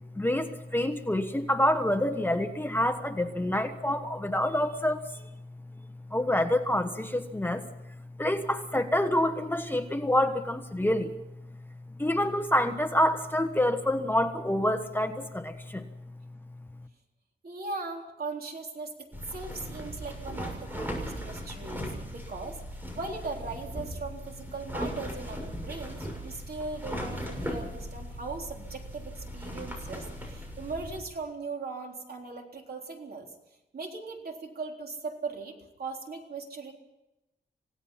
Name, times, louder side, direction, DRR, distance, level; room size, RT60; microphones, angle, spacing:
voice 1, 0.1-5.1 6.1-7.7 8.2-11.1 12.0-15.8, left 1 dB, 10° left, 7 dB, 1.2 m, -27 dB
voice 2, 17.4-22.6 23.0-33.3 33.7-36.7, right 3 dB, 55° right, 2 dB, 3.8 m, -39 dB
sound 1, 19.1-31.0, equal, 10° right, 6.9 m, -38 dB
27.5 x 17.5 x 5.7 m, 0.94 s
wide cardioid pair, 120°, 18 cm